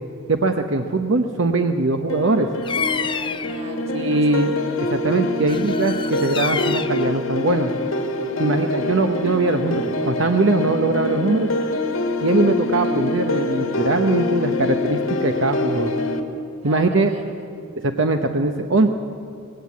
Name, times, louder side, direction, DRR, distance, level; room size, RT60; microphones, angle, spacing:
voice 1, 0.3-2.5 3.9-4.5 4.9-7.7 8.4-11.5 12.2-15.9 16.6-17.1 17.8-18.9, right 2 dB, 65° right, 5 dB, 0.9 m, -21 dB
sound 1, 2.1-16.2, left 2 dB, 75° left, 1.8 m, -25 dB
Bird vocalization bird call bird song, 2.6-3.6 5.5-7.1, left 6 dB, 25° left, 0.5 m, -28 dB
voice 2, 2.9-4.4 16.6-17.6, right 2 dB, 30° right, 2 dB, 2.7 m, -40 dB
20.0 x 17.0 x 8.3 m, 2.5 s
head